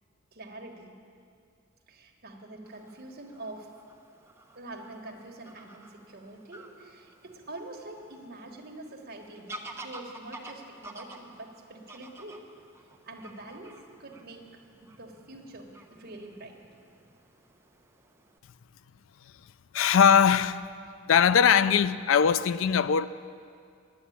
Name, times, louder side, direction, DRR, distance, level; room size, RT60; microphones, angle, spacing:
voice 1, 0.3-1.0 1.9-3.7 4.5-12.4 13.0-16.6, right 2 dB, 50° right, 1.4 m, -45 dB
Fowl / Bird vocalization bird call bird song, 2.6-18.4, right 2 dB, 15° right, 0.8 m, -50 dB
voice 2, 19.7-20.7 21.1-23.1, left 7 dB, 70° left, 0.4 m, -21 dB
11.0 x 9.4 x 8.5 m
head